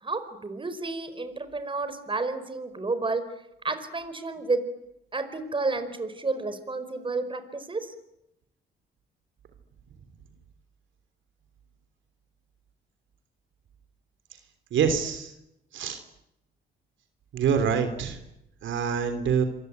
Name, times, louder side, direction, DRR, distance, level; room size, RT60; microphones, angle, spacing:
voice 1, 0.0-3.2 3.6-4.6 5.1-7.9, right 3 dB, 25° right, 10 dB, 4.9 m, -31 dB
voice 2, 14.7-15.3 15.7-16.0 17.3-18.2 18.6-19.4, right 7 dB, 75° right, 7 dB, 3.3 m, -25 dB
27.0 x 23.0 x 9.5 m, 0.84 s
cardioid pair, 90°, 20 cm